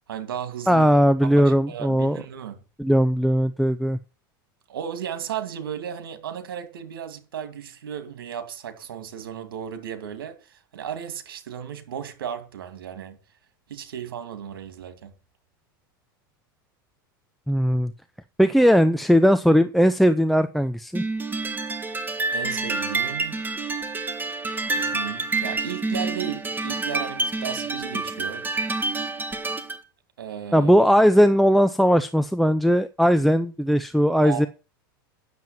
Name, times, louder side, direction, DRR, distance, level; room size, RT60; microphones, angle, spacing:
voice 1, 0.1-0.9 1.2-2.6 4.7-13.2 13.7-15.1 22.3-23.4 24.7-28.4 30.2-30.7 34.2-34.5, right 9 dB, 85° right, 2.5 m, -35 dB
voice 2, 0.7-2.2 2.8-4.0 17.5-17.9 18.4-21.0 30.5-34.5, equal, ahead, 0.6 m, -18 dB
sound 1, 20.9-29.8, right 3 dB, 15° right, 1.6 m, -28 dB
9.5 x 7.5 x 7.2 m
hypercardioid pair, 105°, 12 cm